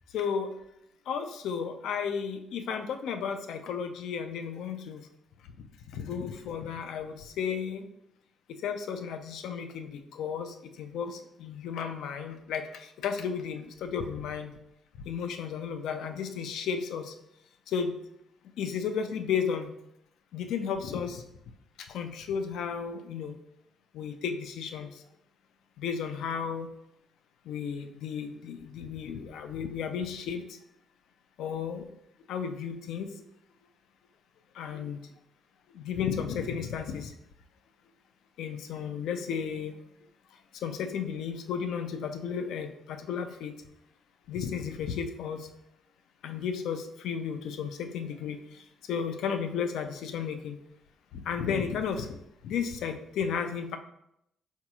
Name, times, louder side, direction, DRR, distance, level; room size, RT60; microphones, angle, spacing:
voice 1, 0.1-0.5 1.1-5.0 5.9-7.8 8.6-14.5 15.1-17.1 17.7-18.0 18.6-19.7 20.3-21.2 21.8-23.4 23.9-25.0 25.8-26.7 27.5-30.4 31.4-31.8 32.3-33.1 34.6-35.0 35.7-37.1 38.4-39.8 40.6-43.5 44.3-45.5 46.2-48.4 48.9-50.6 51.1-52.2 52.4-53.8, left 7 dB, 80° left, 7 dB, 0.4 m, -33 dB
4.4 x 4.0 x 2.3 m, 0.78 s
cardioid pair, 90°, 0 cm